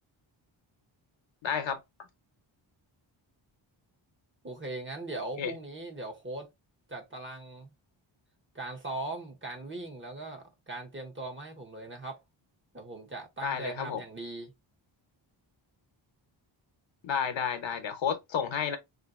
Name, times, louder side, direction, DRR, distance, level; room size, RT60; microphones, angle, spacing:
voice 1, 1.4-1.8 5.4-5.5 13.4-14.0 17.0-18.8, left 7 dB, 70° left, 0.9 m, -31 dB
voice 2, 4.4-6.5 6.9-7.7 8.5-12.2 12.7-14.5, right 2 dB, 25° right, 0.8 m, -39 dB
3.7 x 2.6 x 2.4 m
wide cardioid pair, 130°, 48 cm